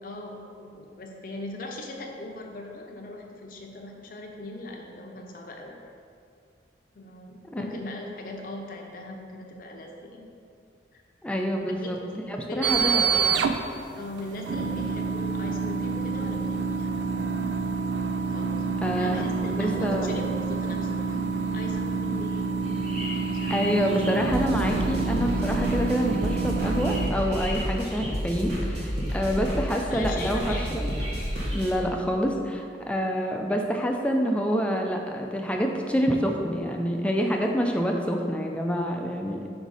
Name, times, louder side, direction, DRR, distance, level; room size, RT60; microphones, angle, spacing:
voice 1, 0.0-5.7 6.9-10.2 10.9-11.0 11.8-13.3 13.9-17.3 18.3-18.5 18.9-22.5 23.2-23.6 29.9-30.6, left 2 dB, 50° left, 1 dB, 0.7 m, -39 dB
voice 2, 11.2-12.0 12.3-13.0 18.8-20.2 23.5-30.9 31.5-39.4, equal, 5° left, 2 dB, 0.4 m, -27 dB
sound 1, 12.6-27.1, right 5 dB, 90° right, 0.4 m, -28 dB
sound 2, 22.6-31.7, left 1 dB, 30° right, 1.2 m, -42 dB
sound 3, 24.2-31.7, equal, 70° right, 1.2 m, -30 dB
5.0 x 4.8 x 4.0 m, 2.4 s
head